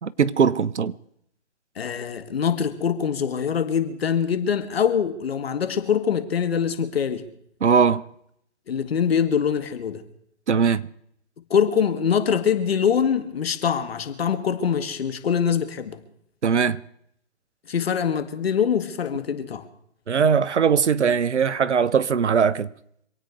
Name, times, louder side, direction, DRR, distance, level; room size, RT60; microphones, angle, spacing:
voice 1, 0.0-0.9 7.6-8.0 10.5-10.9 16.4-16.8 20.1-22.7, right 6 dB, 80° right, 1.0 m, -20 dB
voice 2, 1.8-7.3 8.7-10.0 11.5-16.0 17.7-19.7, left 7 dB, 60° left, 2.0 m, -23 dB
26.5 x 9.2 x 4.8 m
hypercardioid pair, 150°, 34 cm